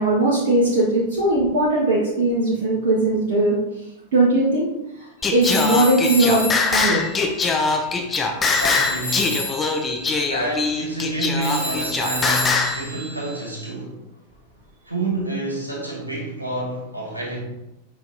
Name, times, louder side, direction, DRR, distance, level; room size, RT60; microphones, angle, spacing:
voice 1, 0.0-3.6 4.1-4.7 5.3-7.0, right 2 dB, 60° right, -4 dB, 1.6 m, -19 dB
Singing, 5.2-12.8, left 4 dB, 20° left, 1.0 m, -22 dB
Telephone, 5.4-8.2 8.4-13.7, left 1 dB, 70° left, 2.3 m, -31 dB
voice 2, 8.6-9.4 10.3-13.9 14.9-17.4, right 2 dB, 85° right, -4 dB, 2.5 m, -28 dB
7.7 x 5.0 x 4.0 m, 0.93 s
figure-of-eight pair, 90°, 0 cm